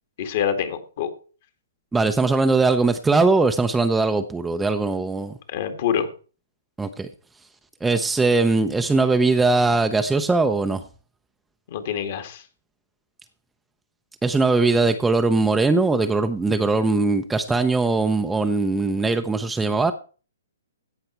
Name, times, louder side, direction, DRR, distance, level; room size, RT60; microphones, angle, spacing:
voice 1, 0.2-1.1 5.5-6.1 11.7-12.4, left 8 dB, 50° left, 8 dB, 2.0 m, -26 dB
voice 2, 1.9-5.4 6.8-7.1 7.8-10.8 14.2-19.9, right 3 dB, 5° right, 8 dB, 0.6 m, -20 dB
16.5 x 5.8 x 4.4 m, 0.37 s
hypercardioid pair, 140°, 0 cm